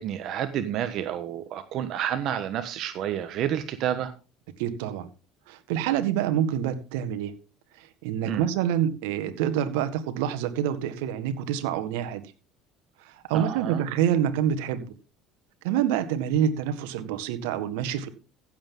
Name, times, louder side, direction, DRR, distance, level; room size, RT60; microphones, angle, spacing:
voice 1, 0.0-4.1 8.2-8.5 13.3-13.8, right 10 dB, 55° right, 10 dB, 1.3 m, -29 dB
voice 2, 4.6-5.1 5.5-7.3 7.8-12.2 13.0-14.9 15.6-18.1, right 9 dB, 80° right, 11 dB, 1.6 m, -27 dB
15.5 x 7.7 x 3.8 m, 0.33 s
supercardioid pair, 100°, 0 cm